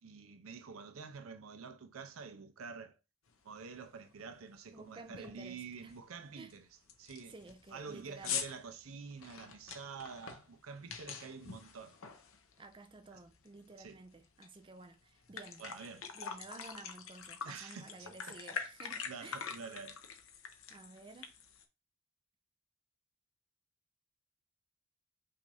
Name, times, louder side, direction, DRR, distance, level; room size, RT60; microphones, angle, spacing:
voice 1, 0.0-3.0 3.4-6.7 7.0-7.3 7.7-12.0 13.1-13.2 13.8-14.0 15.6-16.1 17.4-18.4 19.0-20.0, right 5 dB, 80° right, 0.6 m, -48 dB
sound 1, 3.5-3.6 4.1-4.4 4.6-4.7 5.1-5.5 5.9-6.0 6.5-6.6 6.9-12.8 13.2-14.5 14.8-14.9 15.2-21.6, left 7 dB, 75° left, 0.8 m, -44 dB
voice 2, 4.7-5.9 6.4-6.5 7.3-8.4 12.6-15.6 16.1-19.4 20.7-21.3, right 3 dB, 25° right, 0.5 m, -53 dB
5.7 x 2.6 x 3.3 m
head